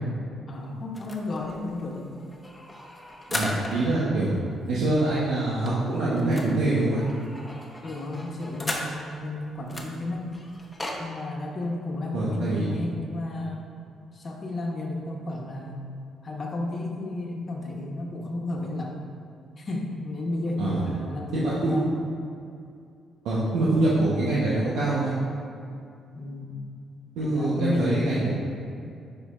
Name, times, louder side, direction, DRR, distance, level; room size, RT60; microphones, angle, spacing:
voice 1, 0.5-2.1 7.8-10.3 11.0-13.7 14.1-15.8 16.2-18.9 19.6-22.0 26.1-26.7 27.2-28.3, left 2 dB, 40° left, 0 dB, 1.1 m, -32 dB
sound 1, 0.9-4.0 4.3-4.4 4.7-4.8 5.1-9.2 9.7-11.0, left 1 dB, 15° left, 0.9 m, -36 dB
voice 2, 3.3-4.3 4.7-7.0 12.1-12.7 20.6-20.8 21.3-21.7 23.2-25.2 27.2-28.3, right 2 dB, 85° right, -8 dB, 1.0 m, -24 dB
9.5 x 5.0 x 2.5 m, 2.5 s
cardioid pair, 90°, 0 cm